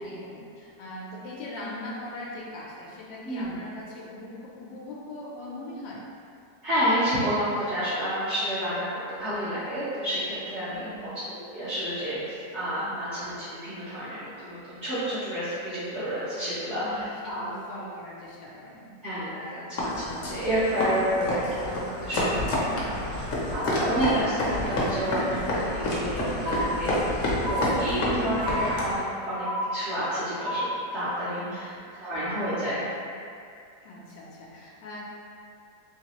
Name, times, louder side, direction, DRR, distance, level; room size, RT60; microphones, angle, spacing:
voice 1, 0.0-6.1 10.7-11.1 12.8-12.9 16.7-18.9 22.4-23.0 31.3-32.1 33.8-35.0, left 1 dB, 85° left, -5 dB, 1.3 m, -41 dB
voice 2, 6.6-17.6 19.0-22.8 23.5-30.7 30.9-31.7 32.0-32.8, equal, 55° right, -12 dB, 0.8 m, -30 dB
sound 1, 19.8-29.0, left 1 dB, 60° left, 0.9 m, -29 dB
sound 2, 26.4-27.1 27.4-28.1 28.4-29.1 29.4-30.1 30.4-31.1, equal, 85° right, 1.3 m, -31 dB
3.1 x 3.1 x 2.9 m, 2.4 s
omnidirectional pair, 1.9 m